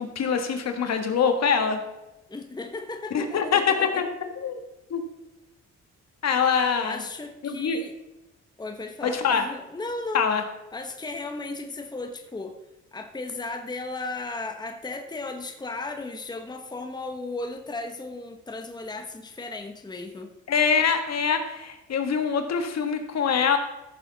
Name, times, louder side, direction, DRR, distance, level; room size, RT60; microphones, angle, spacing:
voice 1, 0.0-1.8 3.1-4.1 4.4-4.6 4.9-5.0 6.2-7.0 7.4-7.8 9.0-9.5 10.1-10.4 20.5-23.6, left 6 dB, 60° left, 6 dB, 1.5 m, -24 dB
voice 2, 2.3-4.0 6.8-7.9 8.6-10.3 10.7-12.6 12.9-20.3, left 3 dB, 15° left, 5 dB, 1.0 m, -35 dB
14.5 x 7.0 x 4.0 m, 1.0 s
cardioid pair, 90°, 30 cm